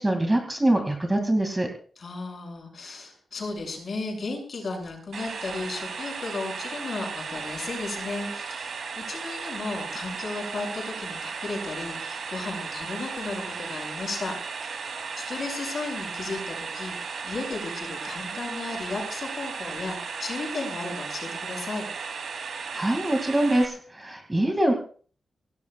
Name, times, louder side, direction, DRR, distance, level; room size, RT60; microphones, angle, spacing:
voice 1, 0.0-1.7 22.7-24.7, right 1 dB, 15° right, 3 dB, 2.3 m, -24 dB
voice 2, 2.0-14.3 14.6-21.9, left 3 dB, 45° left, 2 dB, 6.5 m, -35 dB
sound 1, 5.1-23.7, right 5 dB, 70° right, 2.8 m, -35 dB
25.0 x 17.5 x 2.4 m, 0.43 s
wide cardioid pair, 170°, 0 cm